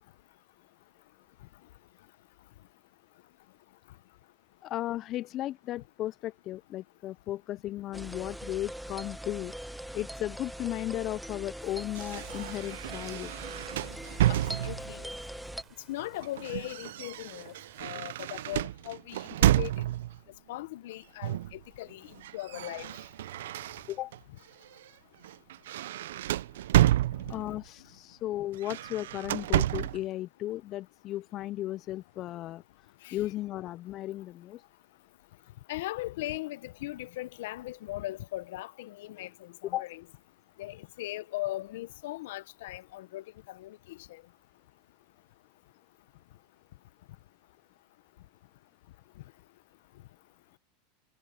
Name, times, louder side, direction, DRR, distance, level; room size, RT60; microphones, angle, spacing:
voice 1, 4.6-9.5 9.9-13.3 23.9-24.1 27.3-32.6 33.1-34.6 39.7-39.8, left 14 dB, 45° left, 0.4 m, -35 dB
sound 1, 7.9-15.6, equal, ahead, 0.6 m, -41 dB
sound 2, 11.6-18.6, right 8 dB, 30° right, 5.6 m, -60 dB
sound 3, 11.9-15.0 16.0-20.2 21.2-21.6 21.9-24.2 24.7-24.9 25.2-27.6 28.5-30.0, right 13 dB, 80° right, 0.5 m, -30 dB
voice 2, 14.3-15.1 15.9-17.5 17.8-19.3 19.6-19.7 20.5-22.9 27.3-27.6 33.0-33.2 35.7-40.0 40.6-44.2, left 17 dB, 75° left, 1.0 m, -39 dB
hypercardioid pair, 115°, 0 cm